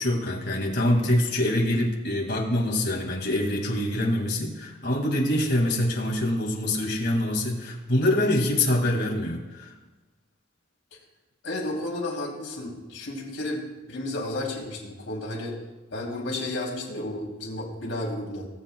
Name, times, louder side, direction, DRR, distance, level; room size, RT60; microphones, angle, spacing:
voice 1, 0.0-9.7, left 1 dB, 50° left, 0 dB, 2.1 m, -25 dB
voice 2, 11.4-15.6 15.9-18.5, left 1 dB, 70° left, -3 dB, 3.0 m, -32 dB
20.0 x 8.2 x 2.3 m, 1.2 s
head